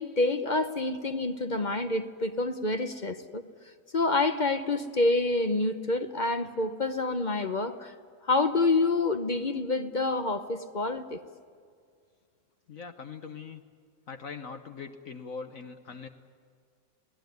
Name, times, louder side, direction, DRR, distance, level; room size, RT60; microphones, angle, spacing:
voice 1, 0.0-3.4 3.9-7.9 8.2-11.2, left 2 dB, 35° left, 9 dB, 0.7 m, -27 dB
voice 2, 12.7-13.6 14.1-16.1, left 5 dB, 55° left, 7 dB, 1.3 m, -41 dB
25.0 x 17.5 x 9.4 m, 2.2 s
omnidirectional pair, 1.9 m